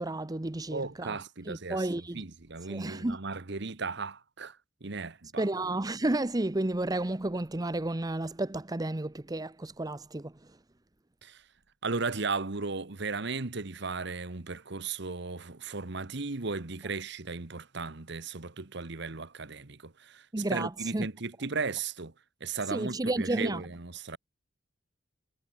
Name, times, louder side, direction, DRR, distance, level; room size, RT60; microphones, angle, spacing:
voice 1, 0.0-1.2 1.5-2.2 2.7-3.2 5.4-10.3 20.3-21.1 22.7-23.6, right 2 dB, 20° right, 0.7 m, -31 dB
voice 2, 0.7-1.9 2.1-4.6 4.8-5.5 11.2-11.4 11.8-22.1 22.4-24.2, right 4 dB, 65° right, 1.4 m, -36 dB
head